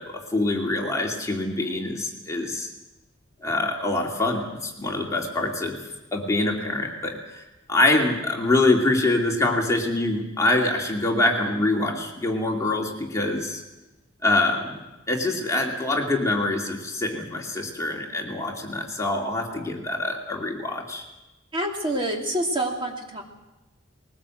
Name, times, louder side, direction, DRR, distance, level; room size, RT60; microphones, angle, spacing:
voice 1, 0.0-2.7 3.4-5.8 6.1-7.4 7.7-13.6 14.2-14.8 15.1-21.0, left 2 dB, 15° left, -1 dB, 2.6 m, -25 dB
voice 2, 21.5-23.2, right 1 dB, 25° right, 0 dB, 3.0 m, -27 dB
21.0 x 19.0 x 7.8 m, 1.0 s
head